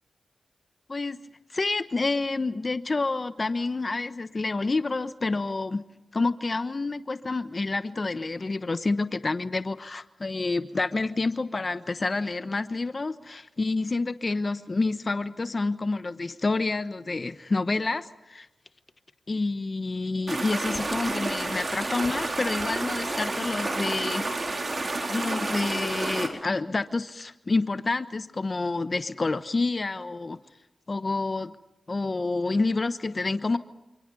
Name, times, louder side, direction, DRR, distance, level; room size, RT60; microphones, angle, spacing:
voice 1, 0.9-1.2 1.5-5.8 6.1-18.5 19.3-24.3 25.1-30.4 30.9-31.5 31.9-33.6, left 3 dB, 45° left, 11 dB, 1.0 m, -28 dB
sound 1, 20.3-26.3, right 2 dB, 45° right, 4.8 m, -30 dB
27.5 x 27.0 x 5.5 m, 0.93 s
cardioid pair, 50°, 0 cm